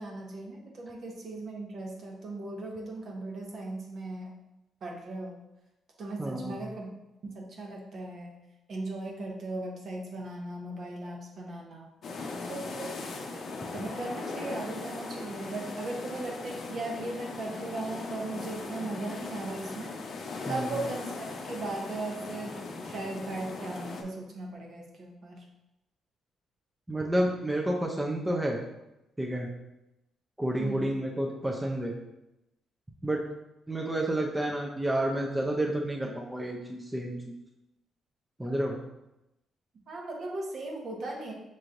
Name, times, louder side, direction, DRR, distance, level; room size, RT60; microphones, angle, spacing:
voice 1, 0.0-4.3 4.8-5.4 6.0-6.9 7.2-8.3 8.7-11.9 12.5-13.4 13.7-20.0 20.5-25.4 30.6-31.0 39.9-41.3, right 2 dB, 55° right, 0 dB, 0.9 m, -38 dB
voice 2, 6.2-6.6 20.5-20.7 26.9-28.6 29.2-29.5 30.4-32.0 33.0-33.2 33.7-37.3 38.4-38.8, right 1 dB, 10° right, 0 dB, 0.5 m, -30 dB
sound 1, 12.0-24.0, left 3 dB, 60° left, 0.6 m, -39 dB
5.7 x 3.1 x 2.5 m, 0.92 s
cardioid pair, 90°, 0 cm